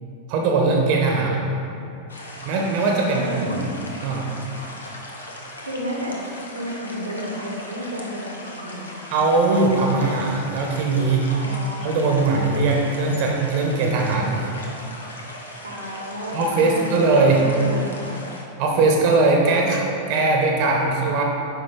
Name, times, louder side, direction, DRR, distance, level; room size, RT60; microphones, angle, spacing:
voice 1, 0.3-1.4 2.4-3.6 4.0-4.3 9.1-11.3 11.8-14.4 16.3-17.4 18.6-21.2, right 3 dB, 45° right, 0 dB, 1.0 m, -20 dB
sound 1, 2.1-18.4, left 1 dB, 75° left, 0.9 m, -38 dB
voice 2, 3.1-3.6 5.6-6.2 6.5-9.0 11.3-11.9 15.6-18.4, equal, 80° right, -1 dB, 1.2 m, -32 dB
9.4 x 5.4 x 3.7 m, 2.8 s
figure-of-eight pair, 90°, 0 cm